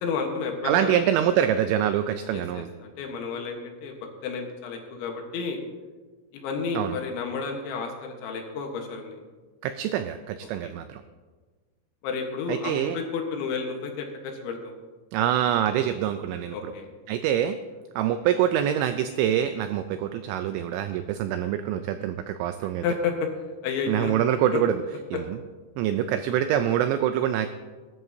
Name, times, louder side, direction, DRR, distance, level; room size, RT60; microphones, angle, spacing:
voice 1, 0.0-1.0 2.3-4.0 4.2-5.6 6.3-9.2 10.6-10.7 12.0-14.7 16.5-16.9 22.8-23.1 23.6-24.1 24.5-24.6, left 5 dB, 70° left, 2 dB, 3.4 m, -31 dB
voice 2, 0.6-2.7 6.8-7.0 9.6-11.0 12.5-13.0 15.1-16.7 17.1-17.6 18.0-22.8 23.9-24.8 25.1-25.4 25.8-27.5, right 10 dB, 85° right, 9 dB, 2.6 m, -25 dB
20.5 x 11.0 x 2.7 m, 1.4 s
omnidirectional pair, 5.8 m